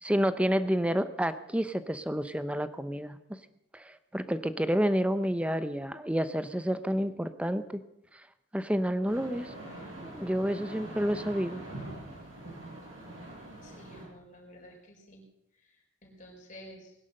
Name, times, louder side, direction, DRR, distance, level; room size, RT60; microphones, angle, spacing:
voice 1, 0.0-3.2 3.7-7.8 8.5-9.5 10.0-11.6, equal, 5° right, 12 dB, 0.7 m, -29 dB
sound 1, 9.1-14.0, right 1 dB, 80° right, 7.7 m, -44 dB
voice 2, 13.6-15.2 15.6-15.7 16.0-16.9, equal, 40° left, 0 dB, 4.8 m, -51 dB
20.0 x 11.0 x 6.5 m, 0.86 s
head